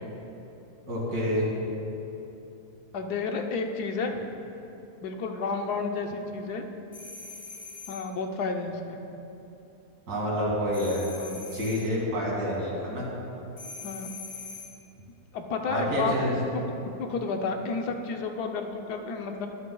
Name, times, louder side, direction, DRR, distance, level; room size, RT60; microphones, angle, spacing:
voice 1, 0.9-1.5 10.1-11.1 11.5-13.1 15.7-16.3, equal, 85° right, -5 dB, 3.0 m, -28 dB
voice 2, 2.9-4.1 5.0-6.6 7.9-9.0 11.2-11.4 13.8-14.1 15.3-16.2 16.5-16.6 17.0-19.5, left 4 dB, 80° left, 4 dB, 1.4 m, -31 dB
sound 1, 6.9-8.1 10.7-11.9 13.6-14.8, left 4 dB, 25° left, 1.3 m, -42 dB
22.5 x 7.9 x 2.3 m, 2.9 s
omnidirectional pair, 1.7 m